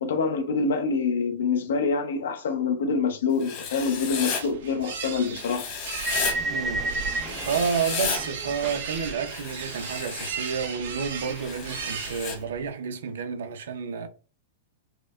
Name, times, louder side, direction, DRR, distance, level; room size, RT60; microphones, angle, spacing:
voice 1, 0.0-5.7, left 5 dB, 85° left, 0.8 m, -26 dB
Writing, 3.4-4.4 5.4-6.3 7.3-8.2 9.3-10.3 11.3-12.4, left 6 dB, 30° left, 0.7 m, -33 dB
sound 1, 3.8-12.7, right 6 dB, 60° right, 1.0 m, -36 dB
sound 2, 6.0-10.0 10.2-12.1, right 2 dB, 5° right, 0.7 m, -34 dB
voice 2, 6.5-6.8 7.5-14.1, right 6 dB, 80° right, 0.6 m, -30 dB
4.6 x 2.1 x 2.4 m
supercardioid pair, 175°, 0 cm